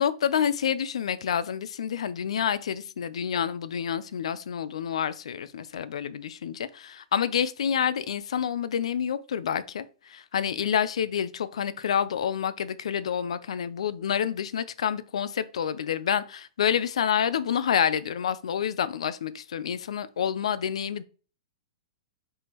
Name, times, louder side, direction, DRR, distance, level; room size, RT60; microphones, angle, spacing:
voice 1, 0.0-21.0, left 8 dB, 85° left, 0.4 m, -28 dB
5.0 x 3.7 x 2.9 m
hypercardioid pair, 165°, 3 cm